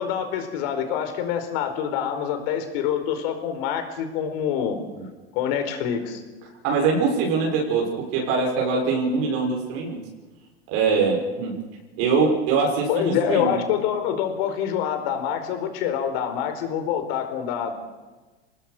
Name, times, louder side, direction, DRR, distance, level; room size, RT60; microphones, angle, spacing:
voice 1, 0.0-4.8 5.3-6.2 12.9-17.7, left 8 dB, 65° left, 7 dB, 4.7 m, -26 dB
voice 2, 6.6-10.0 10.7-11.5 12.0-13.6, right 4 dB, 60° right, -1 dB, 6.3 m, -23 dB
26.5 x 19.0 x 6.7 m, 1.2 s
hypercardioid pair, 105°, 32 cm